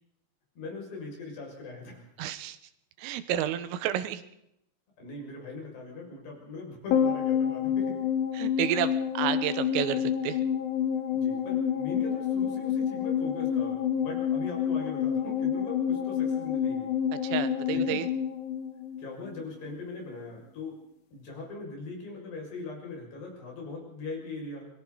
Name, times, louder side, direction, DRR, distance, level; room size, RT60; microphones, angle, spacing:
voice 1, 0.6-2.0 5.0-8.0 11.1-16.9 17.7-18.0 19.0-20.8 21.1-24.7, left 3 dB, 55° left, -1 dB, 8.5 m, -40 dB
voice 2, 2.2-2.6 3.0-4.2 8.3-10.4 17.2-18.1, right 11 dB, 90° right, 12 dB, 3.7 m, -30 dB
sound 1, 6.9-19.4 19.7-19.8, left 8 dB, 75° left, 4.2 m, -28 dB
29.0 x 21.5 x 4.1 m, 0.79 s
omnidirectional pair, 5.7 m